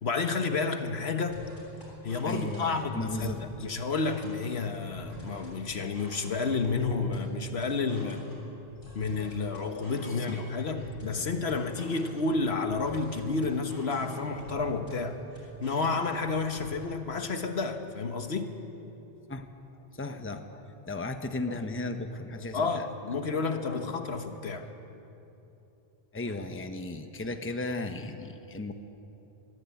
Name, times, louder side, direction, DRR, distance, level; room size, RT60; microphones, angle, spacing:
voice 1, 0.0-1.4 2.0-8.3 8.9-15.2 15.6-18.5 22.5-24.7, left 4 dB, 70° left, 7 dB, 1.4 m, -30 dB
sound 1, 1.3-16.8, equal, 50° left, 6.4 m, -46 dB
voice 2, 2.2-3.4 10.2-10.4 11.2-11.3 19.3-19.5 20.0-22.9 23.3-23.9 26.1-28.7, left 2 dB, 10° left, 6 dB, 0.9 m, -36 dB
22.0 x 14.5 x 8.5 m, 2.9 s
omnidirectional pair, 1.1 m